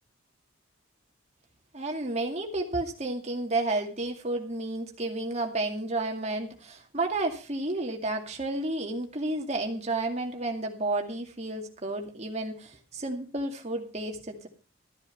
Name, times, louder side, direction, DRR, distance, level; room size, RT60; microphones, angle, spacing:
voice 1, 1.7-14.5, right 2 dB, 35° right, 2 dB, 2.3 m, -31 dB
13.5 x 9.9 x 5.5 m, 0.35 s
head